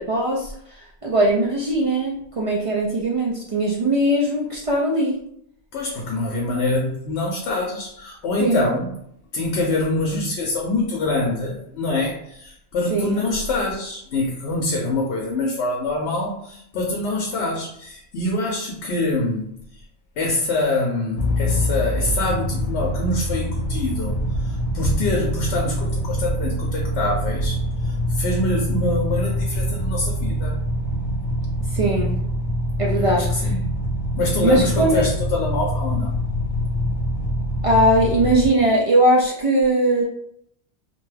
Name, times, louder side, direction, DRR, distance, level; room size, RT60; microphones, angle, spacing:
voice 1, 0.0-5.2 8.4-8.7 12.9-13.2 19.0-19.1 31.7-32.2 32.8-33.5 34.4-35.0 37.6-40.0, right 1 dB, 65° right, -4 dB, 0.3 m, -20 dB
voice 2, 5.7-8.9 9.3-19.5 20.2-30.6 33.0-33.8 34.2-36.1, left 2 dB, 75° left, 1 dB, 0.8 m, -25 dB
sound 1, 21.2-38.5, equal, 60° left, 0.4 m, -24 dB
2.5 x 2.2 x 3.2 m, 0.71 s
omnidirectional pair, 1.2 m